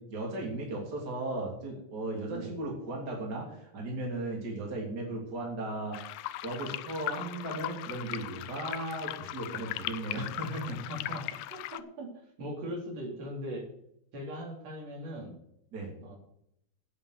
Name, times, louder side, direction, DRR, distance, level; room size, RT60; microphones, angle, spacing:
voice 1, 0.0-6.0 6.4-10.8 15.7-15.9, right 2 dB, 35° right, -2 dB, 3.5 m, -36 dB
sound 1, 5.9-11.8, left 15 dB, 80° left, 1.9 m, -38 dB
voice 2, 10.7-13.7 14.1-15.3 16.0-16.2, equal, 55° right, 0 dB, 4.2 m, -40 dB
9.3 x 7.9 x 8.2 m, 0.74 s
omnidirectional pair, 3.5 m